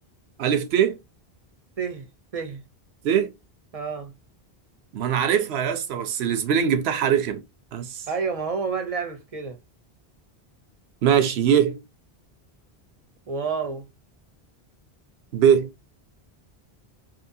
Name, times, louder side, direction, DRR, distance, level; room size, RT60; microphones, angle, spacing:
voice 1, 0.4-1.0 3.0-3.3 4.9-7.4 7.7-8.0 11.0-11.8 15.3-15.7, right 8 dB, 80° right, 0.9 m, -21 dB
voice 2, 1.8-2.1 2.3-2.6 3.7-4.1 8.1-9.6 13.3-13.9, right 5 dB, 40° right, 0.7 m, -29 dB
2.7 x 2.7 x 2.6 m
omnidirectional pair, 1.0 m